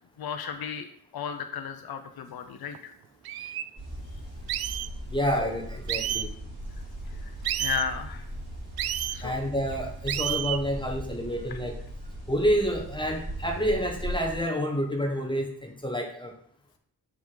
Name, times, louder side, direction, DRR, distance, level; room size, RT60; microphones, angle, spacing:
voice 1, 0.2-0.9 1.1-2.9 7.2-7.3 7.6-8.2 9.1-9.3, left 7 dB, 75° left, 7 dB, 0.8 m, -34 dB
sound 1, 2.7-2.8 3.2-3.6 4.5-4.9 5.9-6.3 7.4-7.8 8.8-9.2 10.1-10.6, right 12 dB, 80° right, 0.5 m, -30 dB
sound 2, 3.8-14.4, equal, 30° right, 3.4 m, -39 dB
voice 2, 5.1-6.3 9.2-11.8 12.3-16.3, equal, 15° left, 1 dB, 1.4 m, -28 dB
7.1 x 5.0 x 4.0 m, 0.62 s
cardioid pair, 50°, 36 cm